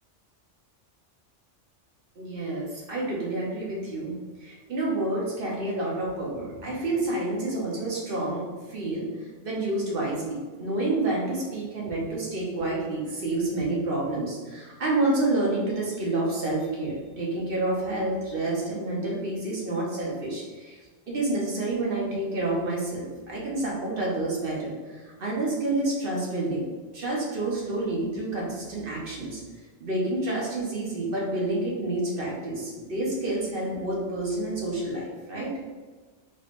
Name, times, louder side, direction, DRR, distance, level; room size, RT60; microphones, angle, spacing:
voice 1, 2.2-20.8 21.1-26.6 26.9-29.4 29.8-35.5, right 2 dB, 55° right, -4 dB, 1.1 m, -29 dB
3.7 x 3.1 x 2.5 m, 1.4 s
omnidirectional pair, 1.2 m